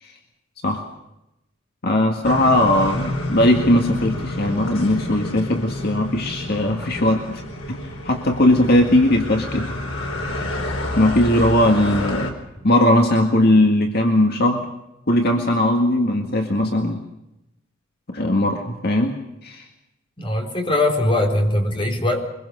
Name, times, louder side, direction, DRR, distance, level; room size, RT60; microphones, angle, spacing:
voice 1, 1.8-7.4 7.7-7.8 8.0-9.8 11.0-12.3 12.6-14.7 15.1-17.0 18.1-19.2 19.4-19.6, left 1 dB, 55° left, 3 dB, 2.0 m, -19 dB
sound 1, 2.2-12.3, left 1 dB, 90° left, 4.1 m, -29 dB
voice 2, 20.2-22.2, left 1 dB, 25° left, 2 dB, 4.1 m, -21 dB
24.0 x 22.0 x 6.4 m, 0.91 s
head